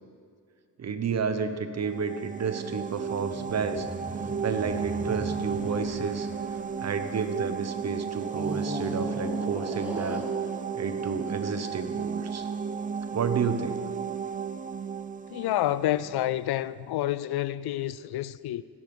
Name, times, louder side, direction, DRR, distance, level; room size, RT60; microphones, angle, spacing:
voice 1, 0.8-3.9 4.4-6.3 6.8-10.2 10.7-12.5 13.1-13.8, right 5 dB, 40° right, 0.9 m, -31 dB
sound 1, 1.8-16.5, right 6 dB, 20° right, 0.3 m, -33 dB
sound 2, 2.8-7.5 8.3-11.7, equal, 5° right, 1.9 m, -39 dB
voice 2, 15.3-18.6, left 13 dB, 65° left, 0.5 m, -28 dB
17.0 x 7.1 x 4.8 m
cardioid pair, 95°, 42 cm